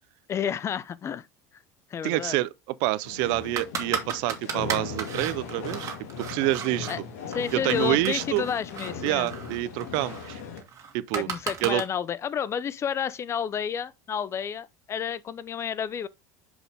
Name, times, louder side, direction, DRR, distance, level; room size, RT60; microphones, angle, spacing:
voice 1, 0.3-1.3 1.9-2.4 6.9-7.0 7.3-9.3 11.1-16.1, left 8 dB, 35° left, 0.6 m, -30 dB
voice 2, 2.0-2.5 2.8-6.9 7.5-8.5 9.0-10.4 10.9-11.3 11.6-11.8, right 18 dB, 65° right, 0.6 m, -27 dB
sound 1, 3.0-10.6, left 6 dB, 80° left, 1.9 m, -38 dB
sound 2, 3.6-7.0 7.3-11.8, right 7 dB, 35° right, 2.0 m, -35 dB
6.2 x 5.5 x 3.5 m
supercardioid pair, 100°, 8 cm